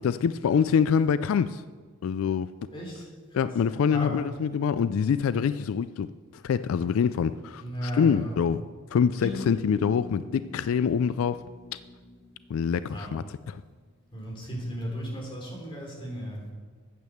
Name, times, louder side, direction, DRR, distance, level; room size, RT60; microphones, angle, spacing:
voice 1, 0.0-1.6 2.0-2.5 3.3-6.1 6.3-8.6 8.9-11.4 12.5-13.6, left 7 dB, 85° left, 14 dB, 0.3 m, -25 dB
voice 2, 2.7-3.5 3.8-4.2 7.6-8.4 12.9-13.1 14.1-16.4, equal, 25° left, -2 dB, 3.4 m, -35 dB
sound 1, 9.2-13.1, left 2 dB, 15° right, 3.0 m, -42 dB
9.4 x 8.3 x 7.0 m, 1.5 s
head